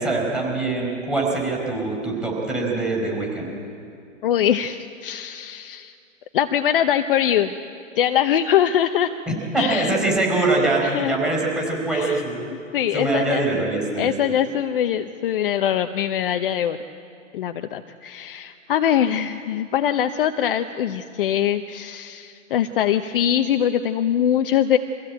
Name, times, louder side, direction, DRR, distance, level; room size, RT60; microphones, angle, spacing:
voice 1, 0.0-3.5 9.3-12.4 12.9-14.1, right 2 dB, ahead, 0 dB, 5.2 m, -23 dB
voice 2, 4.2-5.9 6.3-7.5 8.0-9.1 9.6-9.9 10.8-11.2 11.9-12.2 12.5-13.5 14.0-16.8 17.3-24.8, left 10 dB, 45° left, 8 dB, 0.9 m, -22 dB
24.5 x 16.0 x 8.8 m, 2.5 s
hypercardioid pair, 140°, 39 cm